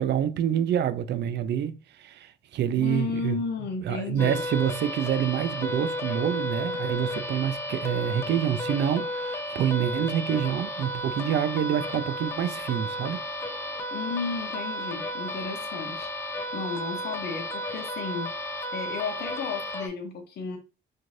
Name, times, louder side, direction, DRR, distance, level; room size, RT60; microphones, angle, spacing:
voice 1, 0.0-3.4 3.8-13.2, right 10 dB, 60° right, 0.4 m, -27 dB
voice 2, 2.8-4.4 13.9-16.1 16.5-20.6, left 5 dB, 60° left, 0.6 m, -33 dB
sound 1, 4.2-19.9, left 1 dB, 10° left, 0.5 m, -33 dB
2.6 x 2.4 x 3.1 m
cardioid pair, 90°, 20 cm